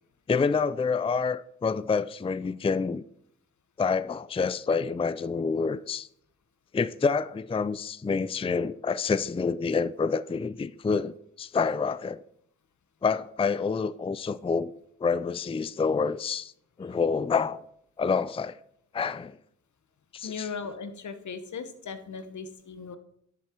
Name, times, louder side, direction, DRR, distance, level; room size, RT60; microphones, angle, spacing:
voice 1, 0.3-3.0 3.8-6.1 6.7-12.2 13.0-14.7 15.0-16.5 16.8-17.6 18.0-18.6 18.9-19.4 20.1-20.5, left 5 dB, 20° left, 0.4 m, -27 dB
voice 2, 20.2-23.0, left 5 dB, 75° left, 1.2 m, -38 dB
11.0 x 7.2 x 4.6 m
cardioid pair, 50°, 30 cm